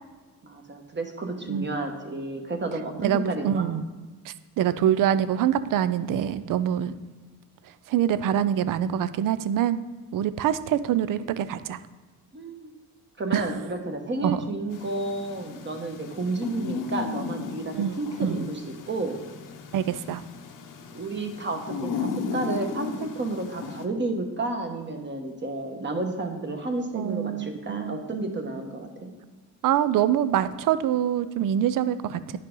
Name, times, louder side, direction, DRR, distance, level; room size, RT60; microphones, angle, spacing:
voice 1, 0.4-3.8 12.3-12.7 13.2-18.6 18.9-19.2 20.9-29.1, right 2 dB, 30° right, 4 dB, 1.2 m, -31 dB
voice 2, 3.0-3.8 4.3-6.9 7.9-9.8 10.1-11.8 13.3-13.4 14.2-14.4 17.7-18.5 19.7-20.2 26.9-28.0 29.6-32.4, right 10 dB, 60° right, 14 dB, 0.5 m, -25 dB
sound 1, 14.7-23.9, left 5 dB, 60° left, 0.8 m, -35 dB
9.8 x 5.6 x 3.8 m, 1.3 s
cardioid pair, 90°, 36 cm